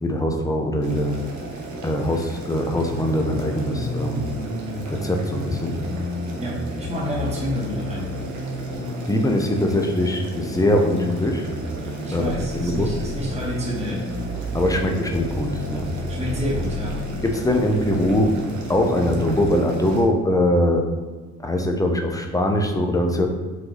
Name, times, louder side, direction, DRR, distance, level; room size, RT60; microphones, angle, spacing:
voice 1, 0.0-1.2 1.8-4.3 4.9-5.8 9.1-11.4 12.1-12.3 12.6-12.9 14.5-15.8 17.2-18.3 18.7-20.8 21.4-23.3, left 1 dB, 10° left, 2 dB, 0.7 m, -22 dB
Boiling, 0.8-20.0, right 2 dB, 70° right, 1.0 m, -35 dB
sound 1, 2.5-19.4, left 1 dB, 80° left, 1.4 m, -32 dB
voice 2, 6.4-8.1 12.0-14.3 16.1-17.0, equal, 20° right, -4 dB, 1.1 m, -29 dB
5.0 x 2.6 x 3.9 m, 1.3 s
cardioid pair, 90°, 30 cm